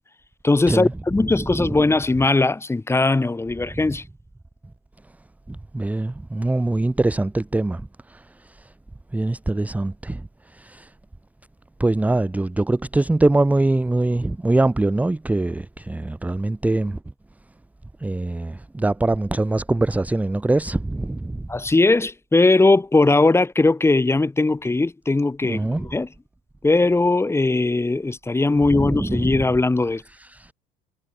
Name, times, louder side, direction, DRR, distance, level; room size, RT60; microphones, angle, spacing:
voice 1, 0.4-4.0 21.5-25.6 25.9-26.1 26.6-30.0, left 2 dB, 10° left, 1.8 m, -19 dB
voice 2, 1.4-1.8 3.7-3.8 5.5-8.7 9.1-10.9 11.8-17.0 18.0-21.5 25.4-25.9 28.6-29.4 30.1-30.5, right 2 dB, 5° right, 0.7 m, -23 dB
supercardioid pair, 85°, 20 cm